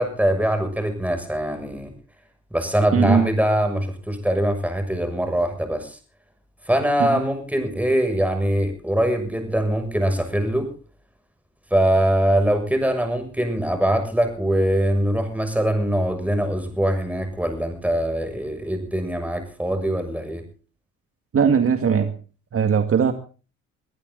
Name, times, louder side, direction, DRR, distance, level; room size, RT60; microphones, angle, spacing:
voice 1, 0.0-1.9 2.5-6.0 6.7-10.7 11.7-20.4, right 1 dB, 5° right, 7 dB, 6.8 m, -22 dB
voice 2, 2.9-3.2 7.0-7.1 21.3-22.1 22.5-23.1, right 7 dB, 50° right, 7 dB, 2.0 m, -19 dB
23.0 x 14.5 x 4.0 m, 0.38 s
cardioid pair, 90°, 30 cm